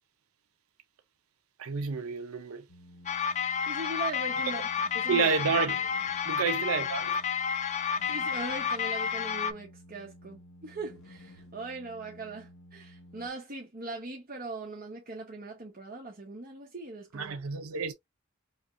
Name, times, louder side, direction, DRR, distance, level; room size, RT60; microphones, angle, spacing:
voice 1, 1.6-2.6 4.5-4.6 5.1-5.9 6.3-7.2 17.1-17.9, right 5 dB, 80° right, 0.5 m, -30 dB
sound 1, 2.7-13.3, equal, 85° left, 1.2 m, -53 dB
sound 2, 3.1-9.5, left 7 dB, 35° left, 0.4 m, -30 dB
voice 2, 3.7-4.6 4.9-5.3 8.1-17.4, right 2 dB, 40° right, 1.0 m, -40 dB
5.2 x 2.2 x 2.5 m
head